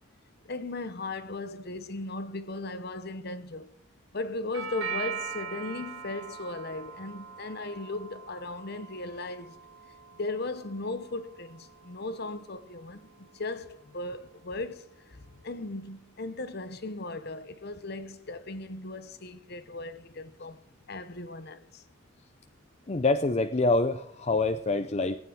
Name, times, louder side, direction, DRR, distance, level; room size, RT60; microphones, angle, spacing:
voice 1, 0.5-3.7 4.1-9.6 10.1-14.9 15.4-21.8, left 2 dB, 50° left, 1.0 m, -37 dB
Doorbell, 4.5-12.6, right 6 dB, 80° right, 2.8 m, -41 dB
voice 2, 22.9-25.2, left 3 dB, 30° left, 0.5 m, -26 dB
18.0 x 9.3 x 4.6 m
head